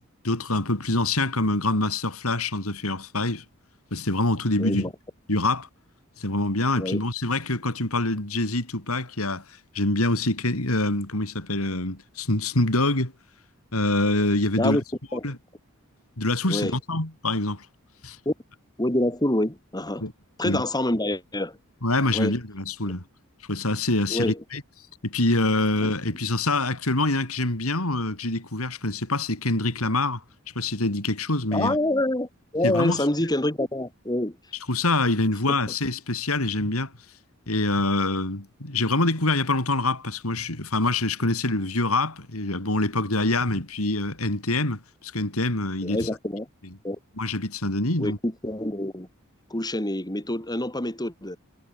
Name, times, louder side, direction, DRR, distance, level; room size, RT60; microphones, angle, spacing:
voice 1, 0.2-3.4 3.9-4.8 5.3-5.7 6.2-9.4 9.7-13.1 13.7-14.8 15.2-15.4 16.2-17.7 18.0-18.2 20.0-20.1 20.4-20.6 21.8-23.0 23.5-24.6 25.0-30.2 30.5-31.8 32.6-33.1 34.7-36.9 37.5-46.1 47.2-48.2, left 2 dB, 75° left, 4.4 m, -25 dB
voice 2, 4.6-4.9 6.8-7.0 14.6-14.8 15.1-15.2 16.5-16.7 18.2-18.3 18.8-20.0 20.4-21.6 22.1-22.4 24.1-24.4 31.5-34.4 35.5-35.6 45.8-46.5 46.8-47.0 48.0-49.1 49.5-51.4, left 1 dB, 20° left, 5.1 m, -26 dB
head